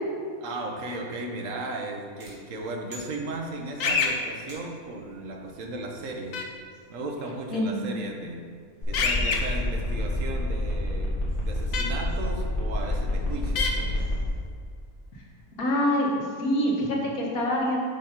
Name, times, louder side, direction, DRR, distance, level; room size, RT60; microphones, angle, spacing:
voice 1, 0.4-6.4 6.9-8.5 8.9-11.1 11.4-14.1, right 2 dB, 65° right, 2 dB, 1.2 m, -36 dB
sound 1, 2.2-3.8 4.5-5.0, right 1 dB, 35° right, 1.8 m, -48 dB
sound 2, 3.8-4.1 6.3-6.4 8.9-9.4 11.7-11.8 13.6-13.7, left 5 dB, 70° left, 1.2 m, -25 dB
voice 2, 7.5-8.0 15.6-17.8, equal, 85° left, -2 dB, 1.8 m, -25 dB
sound 3, 8.8-14.3, left 1 dB, 55° left, 1.6 m, -28 dB
5.5 x 5.2 x 5.6 m, 2.2 s
omnidirectional pair, 1.5 m